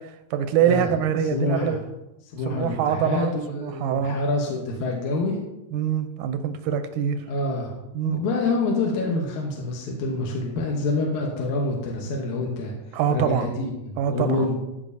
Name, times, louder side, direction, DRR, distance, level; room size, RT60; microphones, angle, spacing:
voice 1, 0.3-1.8 2.5-4.2 5.7-7.2 7.9-8.2 12.9-13.5 14.0-14.5, right 8 dB, 90° right, 9 dB, 2.1 m, -24 dB
voice 2, 1.3-1.8 2.3-5.4 7.3-7.8 8.0-12.7 13.1-14.6, left 2 dB, 75° left, -1 dB, 2.4 m, -26 dB
13.5 x 5.3 x 2.7 m, 0.95 s
omnidirectional pair, 3.6 m